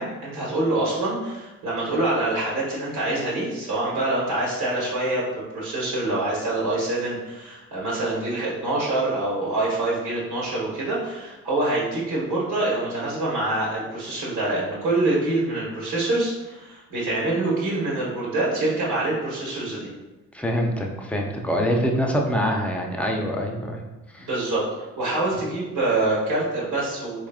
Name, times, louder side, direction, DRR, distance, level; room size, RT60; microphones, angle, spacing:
voice 1, 0.0-5.2 5.5-19.9 24.2-24.7 25.0-27.3, right 2 dB, 85° right, -6 dB, 1.4 m, -25 dB
voice 2, 20.3-23.8 24.1-24.3, equal, 5° left, 1 dB, 0.6 m, -25 dB
4.0 x 3.5 x 2.4 m, 1.1 s
cardioid pair, 90°, 30 cm